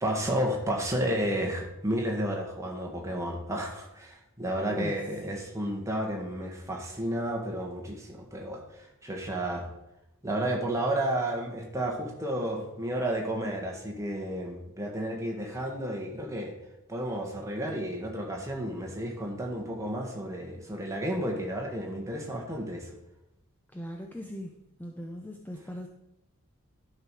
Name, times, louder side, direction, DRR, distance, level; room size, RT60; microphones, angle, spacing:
voice 1, 0.0-8.6 9.0-9.7 10.2-16.5 16.9-23.0, right 1 dB, 15° right, 0 dB, 1.7 m, -32 dB
voice 2, 4.7-5.4 23.7-24.5 24.8-25.9, equal, 10° left, 2 dB, 0.6 m, -39 dB
12.0 x 5.9 x 4.8 m, 0.89 s
head